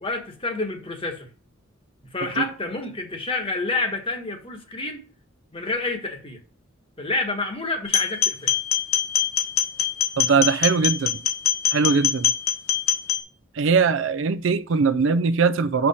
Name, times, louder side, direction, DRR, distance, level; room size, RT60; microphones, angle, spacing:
voice 1, 0.0-1.3 2.0-5.0 5.5-6.4 7.0-8.6, left 2 dB, 25° left, 1.2 m, -28 dB
sound 1, 7.8-13.2, left 9 dB, 85° left, 1.1 m, -23 dB
voice 2, 10.2-11.2 11.7-12.3 13.6-15.9, right 5 dB, 60° right, 0.4 m, -21 dB
6.3 x 5.7 x 4.2 m
head